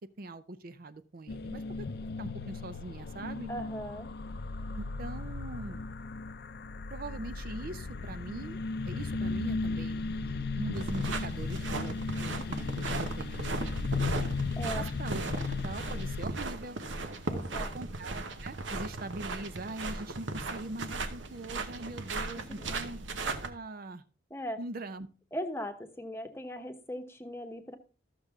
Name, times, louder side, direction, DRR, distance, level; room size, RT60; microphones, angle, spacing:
voice 1, 0.2-1.9 2.2-3.5 4.8-5.8 6.9-14.1 14.7-16.8 17.5-23.0 23.4-24.0 24.6-25.1, right 2 dB, 50° right, 12 dB, 0.5 m, -42 dB
sound 1, 1.3-16.3, left 3 dB, 55° left, 0.5 m, -36 dB
voice 2, 3.5-4.1 14.6-14.9 17.3-17.8 24.3-24.6 25.3-27.8, equal, 15° left, 6 dB, 0.9 m, -38 dB
sound 2, 10.7-23.5, right 3 dB, 80° right, 0.9 m, -37 dB
13.5 x 6.7 x 3.6 m, 0.37 s
head